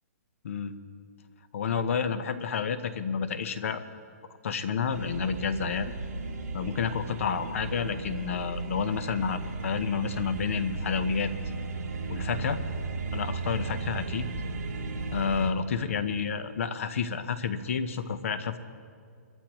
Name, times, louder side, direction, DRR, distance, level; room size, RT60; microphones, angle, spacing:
voice 1, 1.5-3.8 4.4-5.9 6.5-11.3 12.1-12.6 13.1-14.3 15.1-18.6, left 6 dB, 55° left, 11 dB, 1.0 m, -30 dB
sound 1, 4.9-15.5, right 3 dB, 70° right, 2.1 m, -35 dB
24.0 x 13.5 x 3.1 m, 2.2 s
hypercardioid pair, 165°, 9 cm